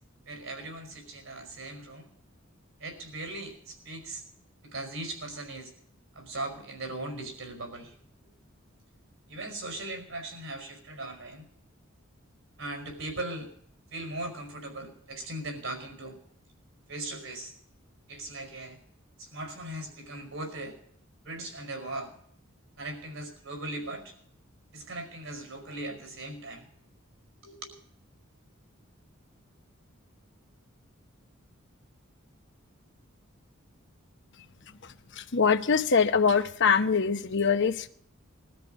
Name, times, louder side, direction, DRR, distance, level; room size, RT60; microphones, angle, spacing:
voice 1, 0.3-2.1 2.8-4.2 4.6-5.7 6.1-8.0 9.3-11.5 12.6-13.5 13.9-16.2 16.9-17.5 18.1-18.8 19.2-20.8 21.2-22.1 22.8-24.1 24.7-26.7 27.4-27.7, right 2 dB, 80° right, 5.3 m, -39 dB
voice 2, 34.7-37.9, left 5 dB, 60° left, 1.0 m, -24 dB
21.0 x 13.0 x 5.2 m
head